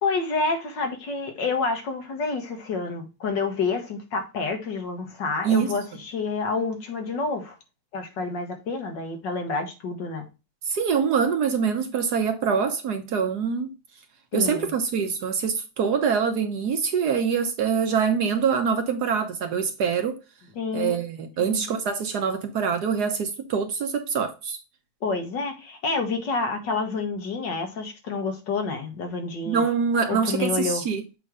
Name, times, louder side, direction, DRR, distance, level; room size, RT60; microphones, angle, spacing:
voice 1, 0.0-7.6 7.9-10.3 14.3-14.7 20.6-21.0 21.4-21.7 25.0-29.6 30.1-30.8, left 4 dB, 65° left, 2.1 m, -28 dB
voice 2, 5.4-5.8 10.7-13.7 14.3-20.2 20.7-24.6 29.5-31.0, right 6 dB, 60° right, 1.3 m, -24 dB
7.6 x 3.1 x 4.9 m
omnidirectional pair, 2.1 m